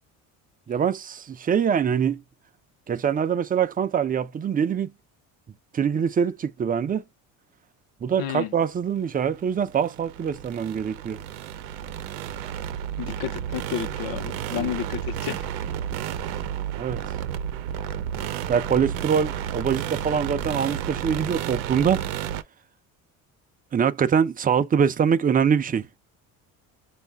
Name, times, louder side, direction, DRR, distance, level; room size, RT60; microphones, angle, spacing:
voice 1, 0.7-2.2 2.9-4.9 5.7-7.0 8.0-11.2 14.5-14.7 16.8-17.0 18.5-22.0 23.7-25.9, right 7 dB, 20° right, 0.4 m, -24 dB
voice 2, 8.2-8.5 13.0-15.4, left 11 dB, 60° left, 0.9 m, -31 dB
sound 1, 9.1-22.4, right 9 dB, 90° right, 0.7 m, -32 dB
5.2 x 2.4 x 3.4 m
supercardioid pair, 95°, 40 cm